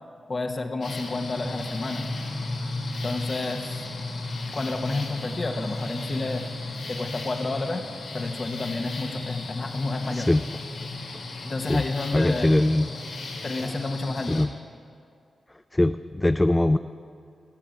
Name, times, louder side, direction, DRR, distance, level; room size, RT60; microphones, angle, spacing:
voice 1, 0.3-2.1 3.0-3.8 4.5-6.4 6.9-7.8 8.1-10.3 11.4-12.5 13.4-14.4, left 3 dB, 45° left, 3 dB, 1.3 m, -30 dB
sound 1, 0.8-14.5, left 2 dB, 80° left, 1.9 m, -34 dB
voice 2, 12.1-12.9 14.3-14.5 15.7-16.8, left 1 dB, 15° left, 10 dB, 0.4 m, -21 dB
15.0 x 7.7 x 9.0 m, 2.5 s
cardioid pair, 60°, 0 cm